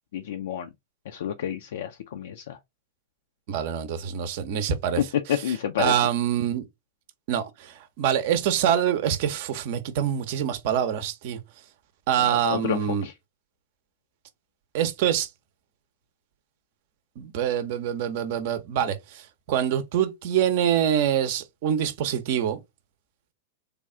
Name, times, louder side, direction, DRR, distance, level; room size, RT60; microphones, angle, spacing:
voice 1, 0.1-0.7 1.1-2.6 5.0-5.9 12.3-13.1, left 9 dB, 65° left, 0.4 m, -29 dB
voice 2, 3.5-5.0 5.8-6.7 7.3-11.4 12.1-13.1 14.7-15.3 17.2-19.2 19.5-22.6, right 9 dB, 55° right, 0.7 m, -25 dB
3.4 x 2.3 x 3.7 m
figure-of-eight pair, 100°, 0 cm